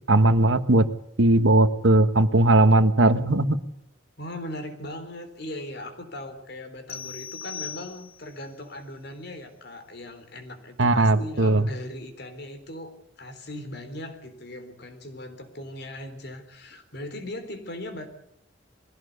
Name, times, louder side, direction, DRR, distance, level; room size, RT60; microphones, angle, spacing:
voice 1, 0.1-0.8 1.2-3.6 10.8-11.6, right 2 dB, 85° right, 11 dB, 1.4 m, -18 dB
voice 2, 4.2-18.1, left 1 dB, 60° left, 8 dB, 3.7 m, -39 dB
sound 1, 6.9-8.4, left 7 dB, 30° left, 1.2 m, -38 dB
22.0 x 16.0 x 8.3 m, 0.73 s
head